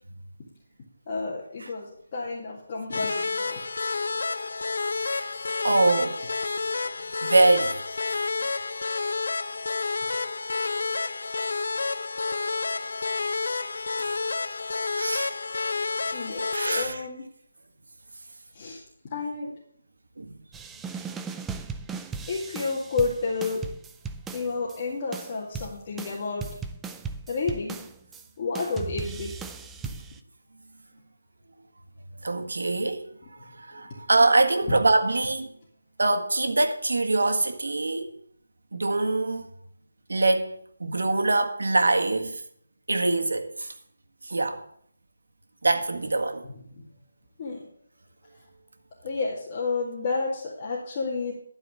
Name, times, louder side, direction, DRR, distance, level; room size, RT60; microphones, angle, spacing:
voice 1, 1.1-3.6 16.1-17.3 18.5-18.8 19.1-19.5 22.3-23.6 24.3-26.4 27.3-27.8 28.4-29.4 46.7-46.8 47.4-47.6 49.0-51.3, left 4 dB, 30° left, 2.1 m, -30 dB
sound 1, 2.9-16.9, left 4 dB, 65° left, 0.7 m, -29 dB
voice 2, 4.9-5.3 5.6-6.2 7.2-7.8 8.1-8.2 14.2-14.4 14.9-15.3 16.5-17.0 20.2-20.3 32.2-33.0 33.3-35.5 36.0-38.1 38.7-39.4 40.1-42.4 42.9-43.7 44.2-44.6 45.6-46.4, right 2 dB, 85° right, 1.6 m, -24 dB
sound 2, 20.5-24.8 25.1-28.2 28.6-30.2, right 5 dB, 5° right, 0.4 m, -37 dB
12.0 x 4.8 x 8.7 m
figure-of-eight pair, 170°, 0 cm